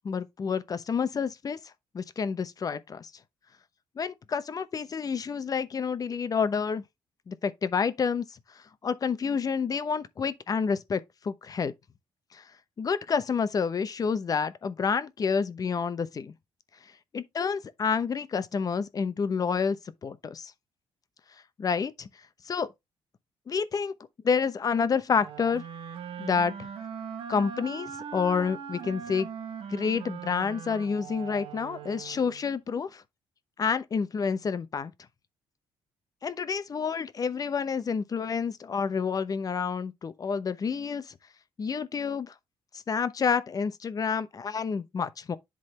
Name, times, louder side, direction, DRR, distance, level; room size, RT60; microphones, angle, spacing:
voice 1, 0.0-1.6 1.9-3.1 4.0-6.8 7.3-8.2 8.8-11.7 12.3-12.4 12.8-16.3 17.1-19.8 20.0-20.5 21.6-22.1 22.4-22.7 23.5-23.9 24.2-25.6 26.2-26.7 27.3-29.3 29.7-33.0 33.6-34.9 36.2-41.1 41.6-42.3 42.7-45.4, left 6 dB, 40° left, 0.8 m, -29 dB
sound 1, 25.1-32.6, right 7 dB, 65° right, 1.5 m, -40 dB
10.5 x 3.9 x 3.3 m
cardioid pair, 105°, 10 cm